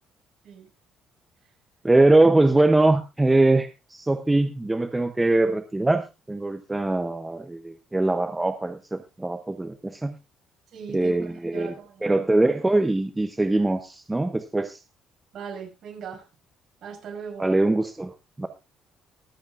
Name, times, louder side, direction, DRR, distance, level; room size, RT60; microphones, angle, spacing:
voice 1, 1.8-10.1 10.9-11.7 12.0-14.8 17.4-18.1 18.4-18.5, right 2 dB, 10° right, 0.6 m, -22 dB
voice 2, 10.7-12.3 15.3-16.2 16.8-17.5, right 6 dB, 50° right, 6.0 m, -39 dB
24.0 x 8.1 x 2.4 m
cardioid pair, 165°, 0 cm